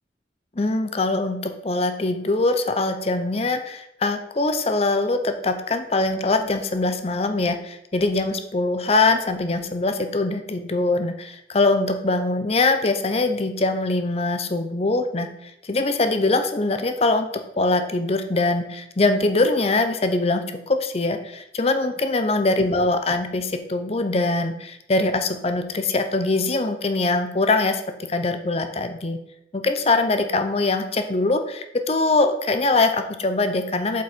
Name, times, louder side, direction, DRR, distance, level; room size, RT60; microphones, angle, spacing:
voice 1, 0.6-17.3 17.6-27.8 28.1-29.2 29.5-34.0, left 2 dB, 35° left, 8 dB, 0.7 m, -22 dB
8.0 x 5.3 x 4.2 m, 0.80 s
head